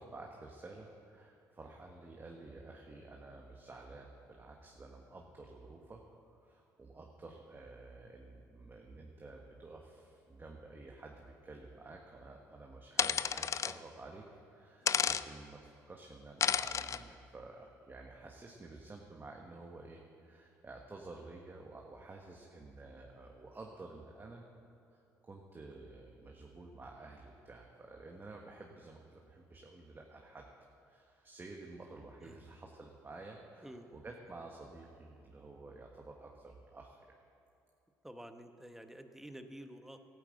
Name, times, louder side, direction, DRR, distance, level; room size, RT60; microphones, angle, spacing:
voice 1, 0.0-6.0 6.4-14.2 14.5-24.4 24.9-30.4 30.8-37.2, right 2 dB, 30° right, 0 dB, 1.5 m, -51 dB
sound 1, 13.0-13.7 14.9-15.2 16.4-17.0, left 7 dB, 45° left, 0.4 m, -31 dB
voice 2, 33.6-34.0 38.0-40.0, right 1 dB, 5° right, 7 dB, 1.1 m, -50 dB
13.0 x 8.9 x 7.8 m, 2.7 s
supercardioid pair, 65°, 7 cm